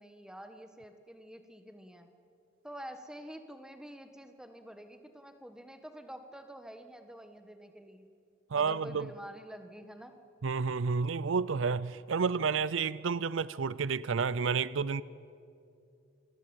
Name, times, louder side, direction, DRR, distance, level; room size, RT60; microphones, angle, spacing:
voice 1, 0.0-2.1 2.6-8.1 8.5-10.1, equal, 5° right, 7 dB, 1.5 m, -48 dB
voice 2, 8.5-9.1 10.4-15.0, right 5 dB, 75° right, 19 dB, 0.5 m, -30 dB
26.5 x 22.0 x 9.0 m, 2.5 s
head